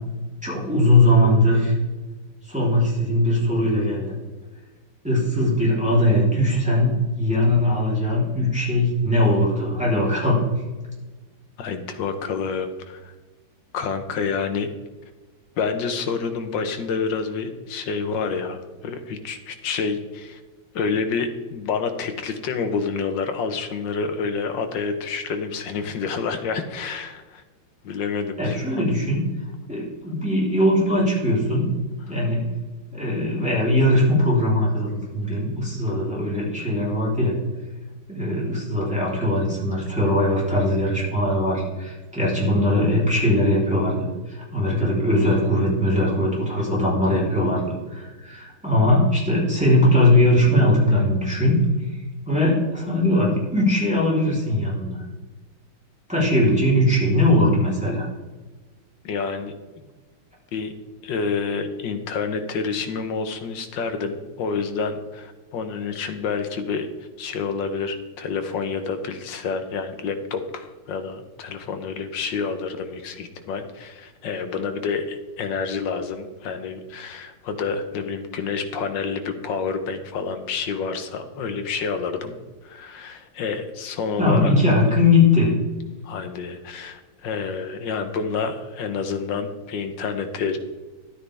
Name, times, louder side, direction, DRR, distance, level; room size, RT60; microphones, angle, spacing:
voice 1, 0.4-1.7 2.4-4.1 5.0-10.5 28.4-29.3 29.7-31.7 32.1-32.5 32.9-37.3 38.1-55.0 56.1-58.1 84.2-85.5, left 1 dB, 5° right, -6 dB, 3.4 m, -20 dB
voice 2, 11.6-13.1 13.7-14.7 15.6-20.4 20.7-27.4 27.8-28.6 59.0-59.9 60.5-60.7 61.0-66.9 67.2-82.4 82.6-84.5 86.0-90.6, left 5 dB, 65° left, 7 dB, 1.6 m, -28 dB
12.0 x 9.5 x 3.4 m, 1.3 s
omnidirectional pair, 2.3 m